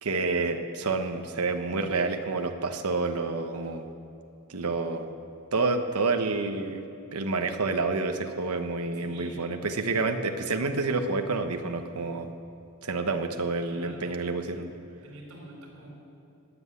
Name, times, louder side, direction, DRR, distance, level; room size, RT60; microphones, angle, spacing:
voice 1, 0.0-3.9 4.5-5.1 5.5-6.8 7.1-12.3 12.8-14.7, right 3 dB, 90° right, 6 dB, 1.0 m, -28 dB
voice 2, 9.0-10.0 10.9-11.1 13.7-14.2 15.0-15.9, right 1 dB, 70° right, -2 dB, 4.8 m, -47 dB
21.0 x 8.0 x 8.3 m, 2.6 s
head